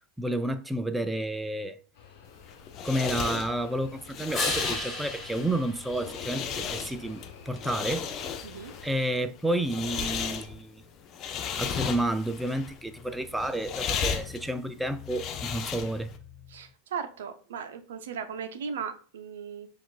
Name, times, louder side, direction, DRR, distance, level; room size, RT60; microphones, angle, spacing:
voice 1, 0.2-1.8 2.8-8.1 8.8-10.8 11.6-16.1, right 1 dB, 5° right, 0.3 m, -30 dB
sound 1, 1.9-8.9, left 7 dB, 70° left, 1.1 m, -50 dB
sound 2, 2.3-16.2, left 7 dB, 40° left, 0.6 m, -35 dB
sound 3, 4.3-6.9 12.6-16.6, left 2 dB, 20° left, 1.4 m, -38 dB
voice 2, 16.5-19.7, right 6 dB, 75° right, 0.5 m, -37 dB
7.0 x 2.4 x 2.4 m
hypercardioid pair, 90°, 0 cm